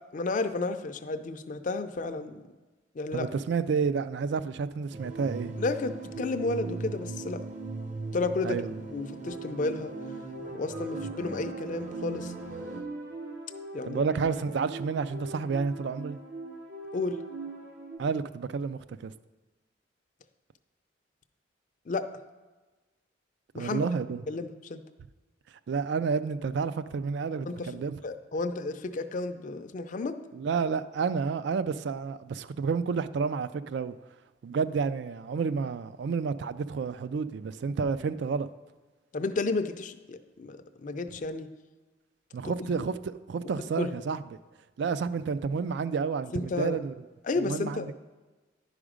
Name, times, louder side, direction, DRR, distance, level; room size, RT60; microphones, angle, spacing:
voice 1, 0.1-2.4 2.9-3.3 5.6-7.4 8.1-8.6 8.9-9.9 10.5-12.3 13.7-14.0 16.9-17.2 21.9-22.1 23.5-23.8 24.3-24.8 27.5-30.2 39.1-41.5 42.4-42.9 43.6-43.9 46.3-46.8 47.3-47.9, left 3 dB, 45° left, 0.5 m, -32 dB
voice 2, 3.1-5.5 8.4-8.8 13.8-16.2 18.0-19.1 23.5-24.2 25.7-28.0 30.3-34.0 34.4-38.5 42.3-44.2 44.8-46.9 47.4-47.9, right 5 dB, 65° right, 0.3 m, -30 dB
sound 1, 4.9-12.8, right 3 dB, 40° right, 0.7 m, -39 dB
sound 2, 9.2-18.0, right 3 dB, 85° right, 1.5 m, -41 dB
11.0 x 5.0 x 5.0 m
head